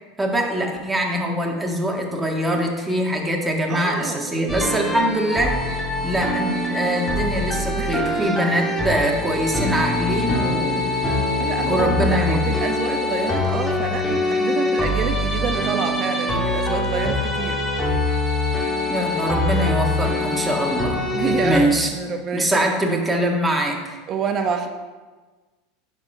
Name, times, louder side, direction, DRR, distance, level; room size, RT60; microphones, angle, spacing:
voice 1, 0.2-5.6 6.0-10.9 11.6-12.4 18.9-21.0 21.3-21.9 22.3-23.8, right 1 dB, 10° right, 0 dB, 1.8 m, -23 dB
voice 2, 3.7-4.2 7.8-8.0 11.4-17.6 21.1-23.0 24.1-24.7, right 5 dB, 40° right, 5 dB, 1.0 m, -27 dB
sound 1, 4.5-21.6, left 2 dB, 10° left, 1.7 m, -23 dB
10.5 x 4.3 x 5.5 m, 1.3 s
hypercardioid pair, 100°, 0 cm